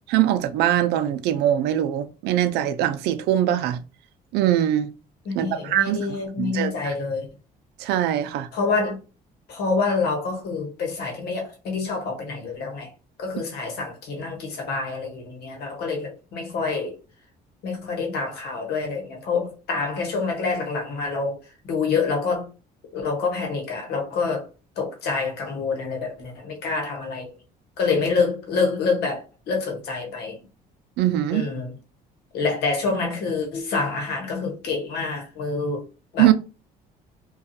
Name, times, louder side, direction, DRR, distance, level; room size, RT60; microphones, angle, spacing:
voice 1, 0.1-3.8 4.3-4.9 5.4-6.0 6.4-6.7 7.8-8.5 31.0-31.5 36.2-36.3, right 12 dB, 80° right, 0.4 m, -22 dB
voice 2, 5.2-7.3 8.5-9.0 9.5-12.9 13.2-17.0 17.6-22.5 22.9-24.5 24.8-27.3 27.8-30.4 31.3-31.7 32.3-35.9 36.1-36.3, left 4 dB, 70° left, 1.0 m, -27 dB
2.4 x 2.3 x 2.6 m
cardioid pair, 110°, 17 cm